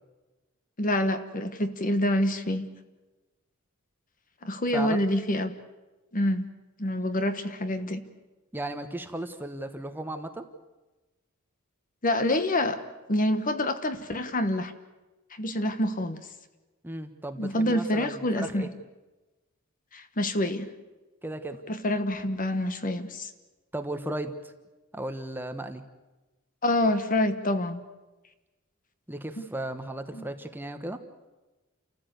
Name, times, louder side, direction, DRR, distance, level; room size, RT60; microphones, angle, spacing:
voice 1, 0.8-2.7 4.4-5.5 6.1-6.5 6.8-8.0 12.0-12.8 13.1-14.7 15.4-16.2 17.4-18.7 19.9-20.7 21.7-23.3 26.6-27.8 29.4-29.5 30.1-30.2, left 1 dB, 40° left, 10 dB, 1.3 m, -27 dB
voice 2, 8.5-10.4 16.8-18.7 21.2-21.6 23.7-24.5 24.9-25.8 29.1-31.0, right 1 dB, 10° right, 7 dB, 1.2 m, -35 dB
29.5 x 14.5 x 8.1 m, 1.1 s
head